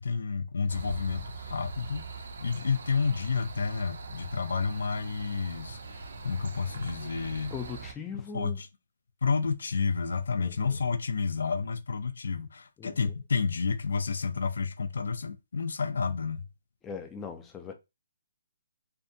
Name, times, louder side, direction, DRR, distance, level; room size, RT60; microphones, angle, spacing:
voice 1, 0.0-7.5 8.3-8.7 9.2-16.4, left 5 dB, 80° left, 0.4 m, -30 dB
sound 1, 0.7-7.9, right 4 dB, 65° right, 0.5 m, -42 dB
voice 2, 7.5-8.6 10.4-10.8 12.8-13.1 16.8-17.7, left 6 dB, 10° left, 0.3 m, -40 dB
2.6 x 2.2 x 2.5 m
hypercardioid pair, 165°, 0 cm